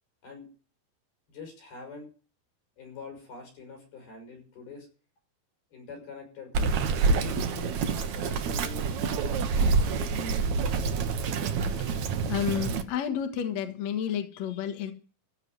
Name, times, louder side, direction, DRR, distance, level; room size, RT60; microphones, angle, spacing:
voice 1, 1.3-2.1 2.8-4.9 5.7-10.3, left 4 dB, 80° left, 2 dB, 8.0 m, -45 dB
Bird vocalization bird call bird song, 6.5-12.8, right 4 dB, 60° right, 2.2 m, -27 dB
voice 2, 11.7-14.9, left 9 dB, 55° left, 5 dB, 2.5 m, -31 dB
15.5 x 7.0 x 9.5 m, 0.39 s
omnidirectional pair, 4.4 m